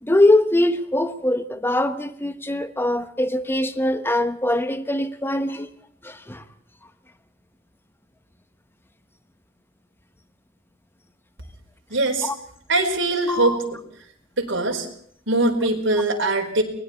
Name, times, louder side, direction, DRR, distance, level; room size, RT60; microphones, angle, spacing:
voice 1, 0.0-5.7 6.0-6.4 13.3-13.6, left 1 dB, 10° left, 1.2 m, -22 dB
voice 2, 11.9-12.3 12.7-13.8 14.4-14.9 15.3-16.6, right 2 dB, 70° right, 4.6 m, -22 dB
29.5 x 20.5 x 4.4 m
head